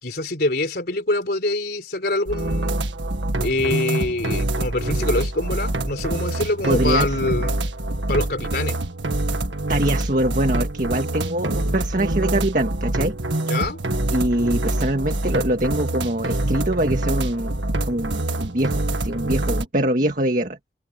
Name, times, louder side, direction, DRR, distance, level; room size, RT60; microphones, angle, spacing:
voice 1, 0.0-2.8 3.4-7.6 8.1-8.8 13.5-13.8, left 2 dB, 55° left, 3.8 m, -25 dB
sound 1, 2.3-19.7, right 1 dB, 85° right, 1.9 m, -25 dB
voice 2, 6.7-7.2 9.7-13.2 14.1-20.6, right 1 dB, 45° right, 1.8 m, -23 dB
head